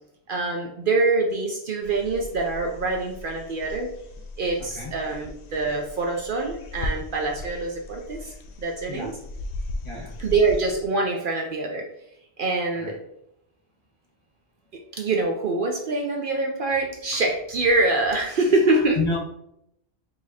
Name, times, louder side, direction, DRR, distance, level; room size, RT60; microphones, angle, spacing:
voice 1, 0.3-3.9 4.4-9.1 10.2-11.9 12.4-13.0 15.0-19.0, right 3 dB, 60° right, 1 dB, 0.7 m, -25 dB
sound 1, 1.8-10.9, left 2 dB, 85° left, 0.9 m, -37 dB
voice 2, 4.6-4.9 8.9-9.2 9.8-10.1 12.8-12.9 18.7-19.2, left 3 dB, 30° left, -4 dB, 1.3 m, -30 dB
4.9 x 2.8 x 2.8 m, 0.77 s
omnidirectional pair, 1.1 m